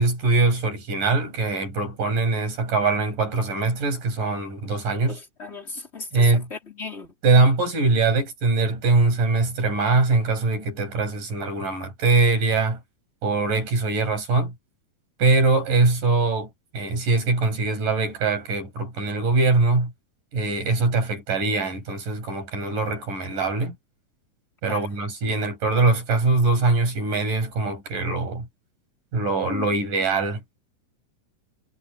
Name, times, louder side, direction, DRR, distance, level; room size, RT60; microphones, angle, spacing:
voice 1, 0.0-5.2 6.1-6.5 7.2-12.8 13.2-14.5 15.2-19.9 20.3-23.8 24.6-28.5 29.1-30.6, right 3 dB, 75° right, 8.8 m, -22 dB
voice 2, 5.1-7.1 24.7-24.9 29.5-29.6, left 4 dB, 20° left, 4.1 m, -36 dB
omnidirectional pair, 3.8 m